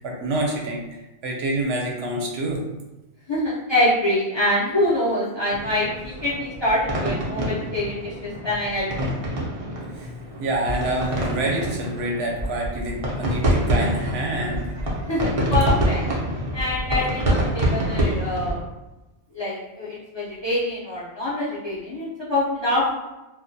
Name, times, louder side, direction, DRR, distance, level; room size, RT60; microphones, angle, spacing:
voice 1, 0.0-2.6 9.9-10.1 10.4-14.7, right 1 dB, 75° right, -1 dB, 0.8 m, -27 dB
voice 2, 3.3-9.1 15.1-16.0 16.5-18.6 19.3-23.1, left 1 dB, 35° left, -9 dB, 0.5 m, -25 dB
sound 1, 5.5-18.5, equal, 40° right, 0.5 m, -26 dB
2.2 x 2.1 x 2.6 m, 1.0 s
omnidirectional pair, 1.1 m